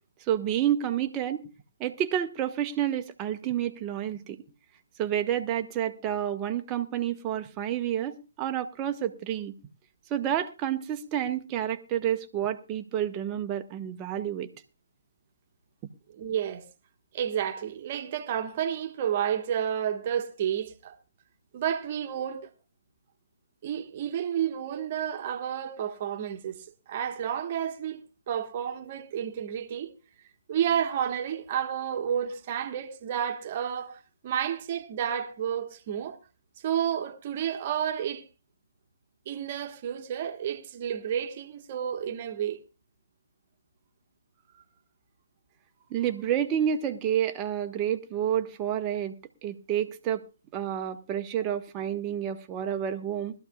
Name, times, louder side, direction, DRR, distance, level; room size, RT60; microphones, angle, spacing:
voice 1, 0.3-1.4 1.8-4.4 5.0-9.5 10.1-14.5 45.9-49.1 49.4-50.2 50.5-53.3, right 10 dB, 20° right, 1.1 m, -29 dB
voice 2, 16.1-16.6 17.1-21.0 21.5-22.5 23.6-29.9 30.5-36.2 36.6-38.2 39.2-42.6, right 9 dB, 35° right, 1.4 m, -31 dB
20.5 x 13.0 x 2.3 m
figure-of-eight pair, 140°, 0 cm